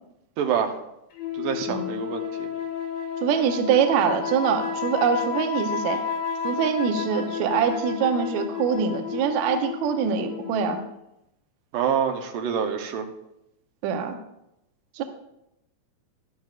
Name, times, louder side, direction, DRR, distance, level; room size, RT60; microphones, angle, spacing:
voice 1, 0.4-0.7 1.3-2.5 11.7-13.1, right 7 dB, 90° right, 4 dB, 2.6 m, -26 dB
sound 1, 1.2-10.9, left 7 dB, 85° left, 2.8 m, -31 dB
voice 2, 3.2-6.0 6.4-10.8 13.8-14.2 15.0-15.1, right 7 dB, 70° right, 5 dB, 2.1 m, -24 dB
13.0 x 12.0 x 2.5 m, 0.85 s
omnidirectional pair, 3.7 m